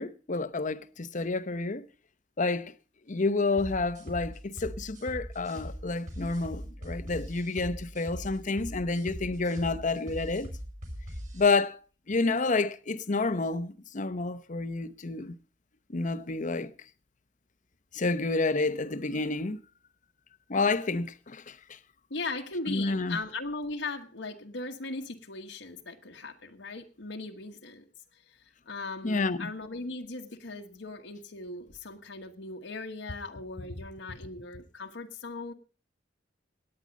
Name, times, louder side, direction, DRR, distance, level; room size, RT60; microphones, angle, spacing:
voice 1, 0.0-1.9 2.4-2.7 3.1-10.5 11.3-11.8 12.1-15.3 15.9-16.7 17.9-19.6 20.5-21.8 22.7-23.2 29.0-29.5, left 3 dB, 45° left, 0.8 m, -29 dB
sound 1, 3.6-11.6, equal, 45° right, 6.5 m, -41 dB
voice 2, 22.1-35.5, left 3 dB, 80° left, 1.3 m, -39 dB
17.5 x 9.8 x 5.2 m
head